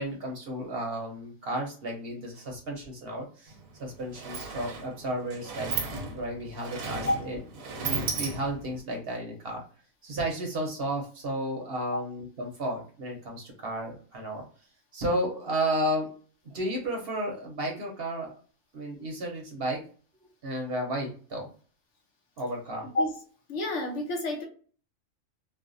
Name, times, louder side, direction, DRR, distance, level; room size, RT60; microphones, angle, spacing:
voice 1, 0.0-5.8 6.1-7.4 7.7-9.6 10.0-14.4 14.9-16.1 16.4-18.3 18.7-19.8 20.1-21.5 22.4-22.9, right 1 dB, 55° right, 0.8 m, -33 dB
Sliding door, 3.5-3.6 3.9-8.8, right 4 dB, 85° right, 1.1 m, -35 dB
voice 2, 23.5-24.4, left 1 dB, 65° left, 0.9 m, -28 dB
3.3 x 2.1 x 2.5 m
omnidirectional pair, 1.4 m